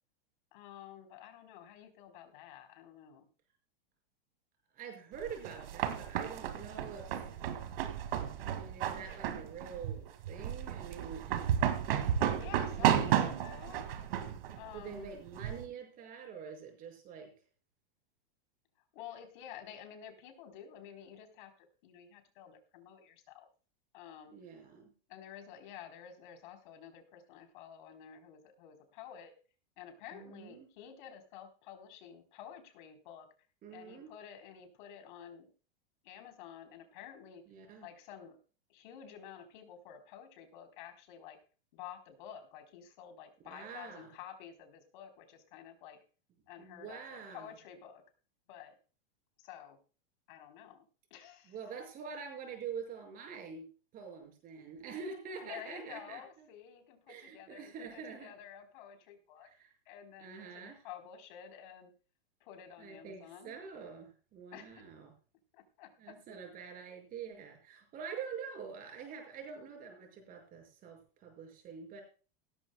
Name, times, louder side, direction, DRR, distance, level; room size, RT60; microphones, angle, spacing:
voice 1, 0.5-3.2 12.4-13.9 14.6-15.1 18.9-23.5 23.9-24.4 25.1-29.3 29.8-33.3 33.7-35.5 36.0-37.4 37.8-38.4 38.7-41.4 41.7-46.0 46.5-48.0 48.5-48.8 49.4-49.8 50.3-51.6 55.4-59.5 59.9-61.9 62.4-63.5 64.5-64.8 65.5-66.2, left 9 dB, 55° left, 6 dB, 3.7 m, -51 dB
voice 2, 4.7-7.3 8.4-11.4 12.5-13.1 14.7-17.3 24.3-24.9 30.1-30.7 33.6-34.1 37.5-37.9 43.4-44.1 46.6-47.5 51.4-53.7 53.9-56.5 57.1-58.3 59.4-59.7 60.2-60.8 62.8-65.1 66.0-72.0, right 6 dB, 30° right, 3 dB, 5.7 m, -46 dB
sound 1, 5.2-15.6, right 10 dB, 70° right, 2.1 m, -33 dB
17.0 x 14.5 x 2.2 m, 0.36 s
supercardioid pair, 155°, 30 cm